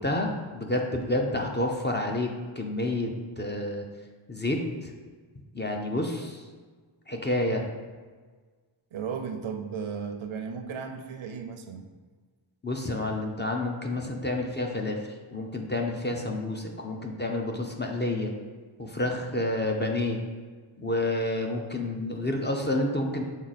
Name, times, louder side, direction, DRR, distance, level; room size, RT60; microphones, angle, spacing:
voice 1, 0.0-3.8 4.3-4.9 5.5-6.4 7.1-7.6 12.6-15.0 15.3-18.3 18.8-20.2 20.8-23.3, left 1 dB, 20° left, 1 dB, 0.6 m, -29 dB
voice 2, 8.9-11.9, right 6 dB, 75° right, 6 dB, 0.7 m, -35 dB
6.3 x 3.9 x 4.1 m, 1.5 s
wide cardioid pair, 140°, 49 cm